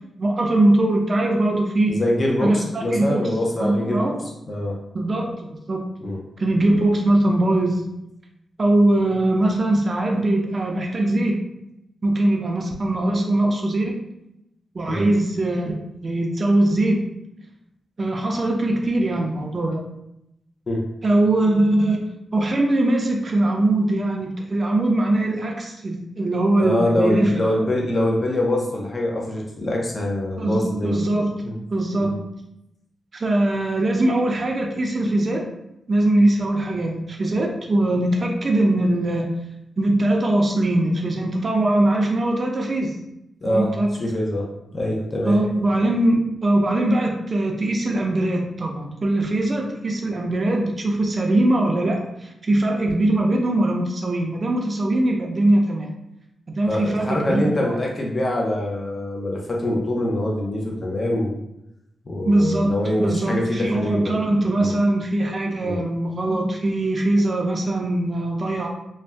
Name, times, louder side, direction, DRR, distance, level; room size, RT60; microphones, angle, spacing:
voice 1, 0.2-2.0 2.4-3.3 3.6-4.2 4.9-5.8 6.4-7.8 8.6-11.4 12.0-14.0 14.7-17.0 18.0-19.8 21.0-22.0 22.3-27.6 30.4-32.2 33.1-35.5 35.9-39.4 39.8-43.0 43.4-43.9 45.2-55.9 56.5-57.8 62.2-68.7, right 1 dB, 40° right, 1 dB, 0.4 m, -21 dB
voice 2, 1.9-4.2 4.5-4.8 6.0-6.2 14.9-15.0 20.7-20.9 26.6-31.0 31.4-31.6 32.0-32.2 43.4-45.4 56.7-61.4 62.1-64.2 64.6-64.8 65.6-65.8, left 1 dB, 30° left, -2 dB, 0.6 m, -24 dB
2.5 x 2.1 x 3.3 m, 0.84 s
cardioid pair, 90°, 0 cm